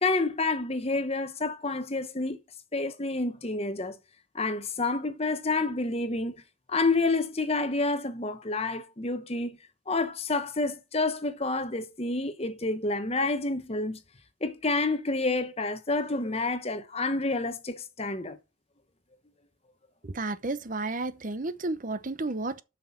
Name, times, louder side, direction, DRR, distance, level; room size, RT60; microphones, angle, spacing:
voice 1, 0.0-2.4 2.7-4.0 4.3-6.4 6.7-9.6 9.9-14.0 14.4-18.4, left 3 dB, 30° left, 1.0 m, -29 dB
voice 2, 20.0-22.6, right 2 dB, 40° right, 0.8 m, -32 dB
7.6 x 6.0 x 7.2 m
head